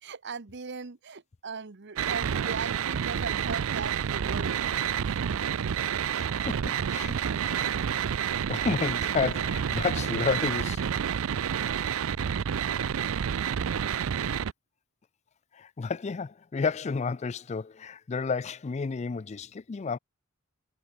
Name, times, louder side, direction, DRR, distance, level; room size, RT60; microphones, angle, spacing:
voice 1, 0.0-4.6 5.0-5.2, right 5 dB, 55° right, 0.9 m, -38 dB
sound 1, 2.0-14.5, right 8 dB, 70° right, 0.5 m, -29 dB
voice 2, 6.1-7.2 7.4-7.6 8.5-11.2 15.5-20.0, left 5 dB, 30° left, 0.4 m, -31 dB
head